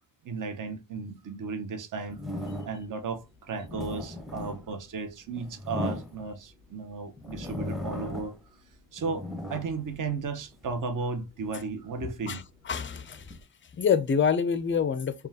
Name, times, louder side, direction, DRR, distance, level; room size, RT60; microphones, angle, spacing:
voice 1, 0.2-2.2 2.6-8.4 8.9-12.4, right 4 dB, 40° right, 0.9 m, -34 dB
sound 1, 2.1-3.0 3.5-6.7 7.2-8.5 8.8-10.7 11.3-13.4, left 2 dB, ahead, 0.8 m, -38 dB
voice 2, 12.3-13.4 13.7-15.1, left 6 dB, 25° left, 0.5 m, -26 dB
5.3 x 2.4 x 2.8 m
cardioid pair, 100°, 47 cm